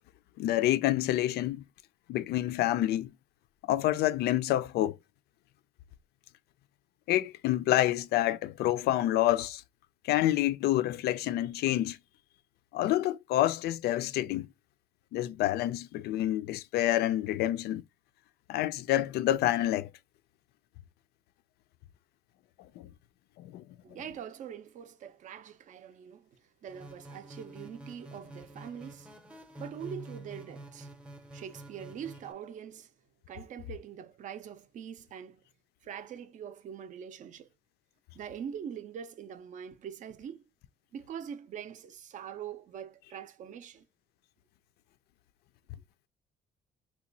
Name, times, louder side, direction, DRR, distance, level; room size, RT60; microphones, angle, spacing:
voice 1, 0.4-1.6 2.1-3.1 3.7-5.0 7.1-9.6 10.0-12.0 12.7-14.5 15.1-17.8 18.5-19.9 22.8-22.9 23.4-23.6, left 14 dB, 70° left, 0.4 m, -28 dB
voice 2, 23.8-29.1 29.6-30.9 31.3-32.9 33.3-35.4 35.8-37.5 38.1-40.4 40.9-43.9, right 8 dB, 50° right, 0.5 m, -43 dB
sound 1, 26.7-32.3, right 2 dB, 5° right, 0.6 m, -47 dB
2.9 x 2.2 x 3.8 m
cardioid pair, 110°, 17 cm